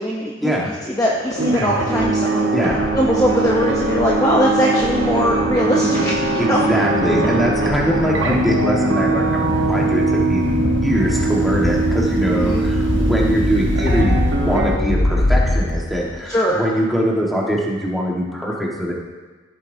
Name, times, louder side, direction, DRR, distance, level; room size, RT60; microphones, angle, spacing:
voice 1, 0.0-2.5 2.9-6.6 12.3-12.6 16.3-16.6, equal, 15° left, -3 dB, 0.6 m, -21 dB
sound 1, 1.1-16.2, left 1 dB, 70° left, 0.9 m, -24 dB
sound 2, 1.4-14.8, right 3 dB, 70° right, 1.1 m, -21 dB
voice 2, 2.5-2.9 6.4-10.4 10.8-14.2 14.5-18.9, equal, ahead, -4 dB, 1.3 m, -22 dB
15.0 x 8.2 x 2.7 m, 1.3 s
head